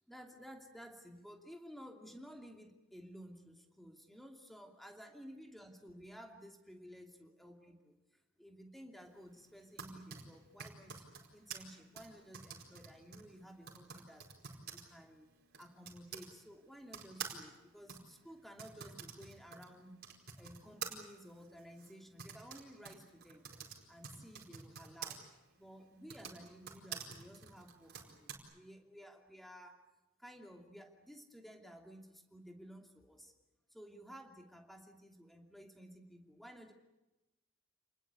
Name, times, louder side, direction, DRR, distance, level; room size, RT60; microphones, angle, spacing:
voice 1, 0.1-8.0 8.4-11.0 11.3-14.2 14.6-15.3 15.6-20.1 20.4-23.4 23.9-25.3 25.6-29.8 30.2-33.3 33.7-36.7, equal, ahead, 3 dB, 2.7 m, -54 dB
Typing, 9.5-16.3 16.9-25.2 25.9-28.4, right 7 dB, 50° right, 4.6 m, -49 dB
29.0 x 20.5 x 8.2 m, 1.0 s
head